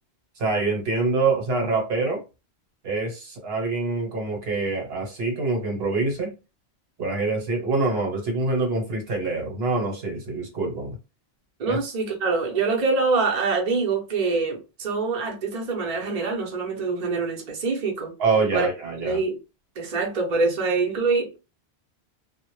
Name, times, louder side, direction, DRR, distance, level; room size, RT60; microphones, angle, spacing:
voice 1, 0.4-2.2 2.8-6.3 7.0-11.0 11.7-11.8 18.2-19.2, right 3 dB, 65° right, 1.0 m, -25 dB
voice 2, 11.6-18.1 18.5-18.7 19.0-19.4 19.8-21.4, right 4 dB, 50° right, 0.6 m, -25 dB
2.1 x 2.0 x 3.0 m
omnidirectional pair, 1.1 m